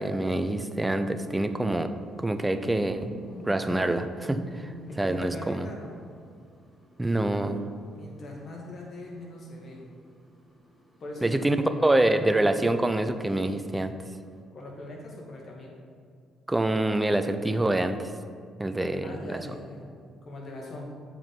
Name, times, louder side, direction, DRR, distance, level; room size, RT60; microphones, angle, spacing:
voice 1, 0.0-1.9 2.2-3.1 3.4-5.7 7.0-7.7 11.2-13.9 16.5-18.1 18.6-19.4, right 1 dB, 15° right, 9 dB, 0.6 m, -26 dB
sound 1, 0.9-14.4, equal, 5° left, 2.0 m, -48 dB
voice 2, 4.9-6.0 7.9-9.8 11.0-11.5 14.5-15.8 19.0-19.9 20.2-20.8, left 1 dB, 45° left, -2 dB, 2.0 m, -41 dB
7.6 x 4.8 x 5.3 m, 2.2 s
hypercardioid pair, 45°, 0 cm